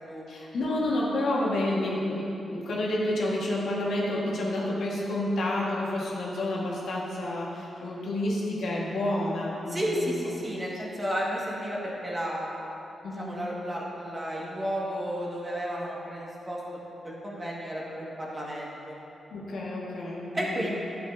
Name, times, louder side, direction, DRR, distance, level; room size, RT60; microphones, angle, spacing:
voice 1, 0.3-10.1 13.0-13.3 19.3-20.7, left 1 dB, 80° left, -5 dB, 1.8 m, -29 dB
voice 2, 9.7-12.5 13.1-16.6 17.0-19.0 20.3-20.7, equal, 25° right, -5 dB, 1.9 m, -32 dB
11.0 x 8.0 x 2.8 m, 3.0 s
cardioid pair, 80°, 0 cm